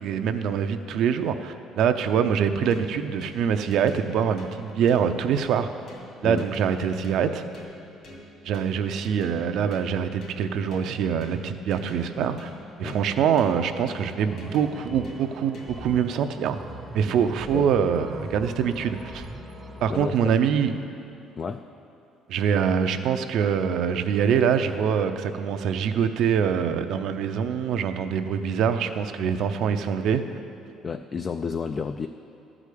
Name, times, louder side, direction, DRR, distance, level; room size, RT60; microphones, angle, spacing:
voice 1, 0.0-5.7 6.2-7.4 8.4-12.5 12.8-16.6 16.9-19.2 19.8-20.7 22.3-30.2, right 7 dB, 70° right, 8 dB, 0.6 m, -24 dB
sound 1, 2.3-16.0, left 2 dB, 55° left, 2.4 m, -46 dB
sound 2, 14.3-20.1, right 2 dB, 15° right, 0.7 m, -40 dB
voice 2, 17.1-17.7 19.9-20.3 21.4-21.6 30.8-32.1, left 5 dB, 30° left, 8 dB, 0.3 m, -31 dB
13.0 x 5.0 x 8.4 m, 2.8 s
cardioid pair, 130°, 0 cm